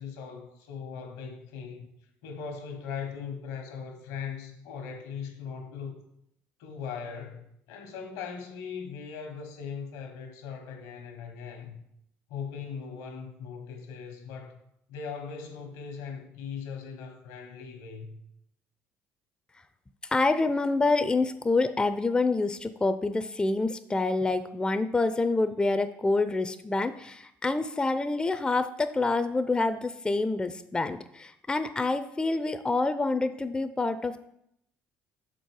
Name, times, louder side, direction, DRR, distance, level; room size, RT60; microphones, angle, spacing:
voice 1, 0.0-1.9 2.2-6.0 6.6-11.8 12.3-14.6 14.9-18.2, left 6 dB, 90° left, 1.2 m, -39 dB
voice 2, 20.1-34.2, left 3 dB, 15° left, 0.5 m, -27 dB
6.4 x 4.5 x 4.7 m
supercardioid pair, 75°, 6 cm